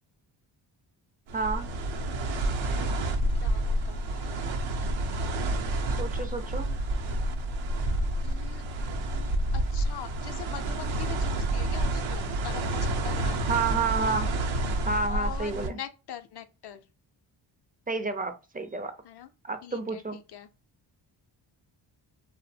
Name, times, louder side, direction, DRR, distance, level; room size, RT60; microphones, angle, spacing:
voice 1, 1.3-1.7 5.9-6.7 13.5-14.3 14.9-15.8 17.9-18.9 19.4-20.2, right 4 dB, 20° right, 0.4 m, -30 dB
Ship bow breaks water, 1.3-15.7, right 1 dB, 80° right, 0.6 m, -29 dB
voice 2, 3.3-4.4 8.2-8.6 9.1-13.7 15.1-16.9 19.0-19.3 19.6-20.5, left 10 dB, 60° left, 0.5 m, -43 dB
2.6 x 2.1 x 2.6 m
cardioid pair, 75°, 46 cm